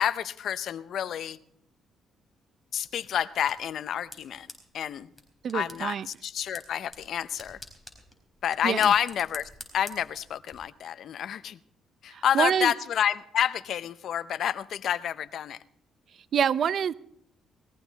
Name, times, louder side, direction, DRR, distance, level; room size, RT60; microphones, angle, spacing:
voice 1, 0.0-1.4 2.7-4.5 4.7-5.1 5.5-5.9 6.2-7.6 8.4-9.5 9.7-11.6 12.0-15.6, left 9 dB, 70° left, 15 dB, 0.7 m, -28 dB
sound 1, 2.8-10.5, left 1 dB, 5° left, 4.3 m, -49 dB
voice 2, 5.4-6.1 8.6-8.9 12.1-12.7 16.3-16.9, right 8 dB, 60° right, 16 dB, 0.6 m, -26 dB
19.5 x 14.5 x 4.1 m, 0.68 s
cardioid pair, 90°, 0 cm